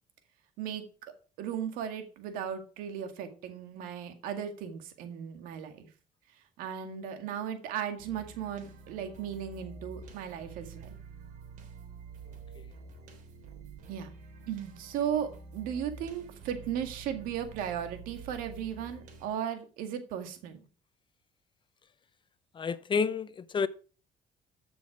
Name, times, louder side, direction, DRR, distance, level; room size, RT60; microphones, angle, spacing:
voice 1, 0.6-1.1 1.4-5.9 6.6-11.0 13.9-14.1 14.5-20.6, right 9 dB, 85° right, 2.0 m, -36 dB
sound 1, 8.0-19.3, right 4 dB, 70° right, 3.3 m, -48 dB
voice 2, 22.5-23.7, left 5 dB, 35° left, 0.7 m, -29 dB
14.0 x 6.2 x 4.8 m
cardioid pair, 95°, 14 cm